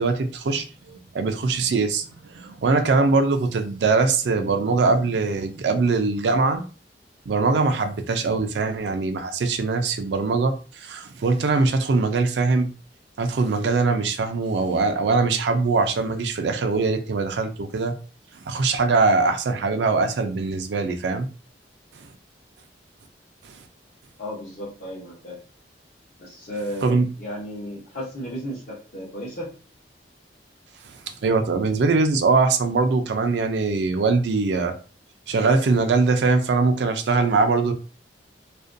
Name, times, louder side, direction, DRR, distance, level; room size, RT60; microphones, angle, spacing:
voice 1, 0.0-6.6 7.3-12.7 13.2-17.9 18.5-21.3 23.4-23.5 26.8-27.1 31.2-34.7 35.3-37.7, right 3 dB, 70° right, 7 dB, 0.4 m, -22 dB
voice 2, 24.2-25.4 26.2-29.5, equal, 55° left, -7 dB, 0.8 m, -34 dB
2.4 x 2.2 x 2.5 m, 0.36 s
head